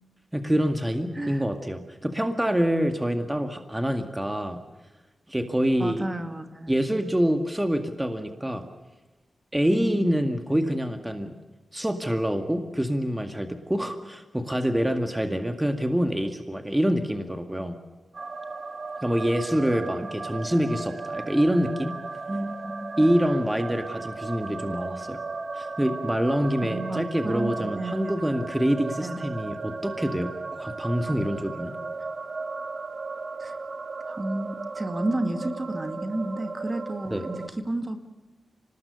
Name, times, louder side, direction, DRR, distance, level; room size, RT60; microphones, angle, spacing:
voice 1, 0.3-4.6 5.3-6.1 6.7-8.7 9.5-11.3 11.7-17.8 19.0-21.9 23.0-25.2 25.5-31.8 37.1-37.2, equal, 10° right, 6 dB, 2.0 m, -26 dB
voice 2, 1.1-1.4 5.8-7.0 9.7-10.3 22.3-23.1 26.6-28.0 29.0-29.3 33.4-33.6 34.0-38.0, right 1 dB, 30° right, 7 dB, 2.2 m, -32 dB
sound 1, 18.1-37.5, right 3 dB, 50° right, 1.9 m, -36 dB
25.0 x 19.5 x 6.6 m, 1.2 s
cardioid pair, 55°, 0 cm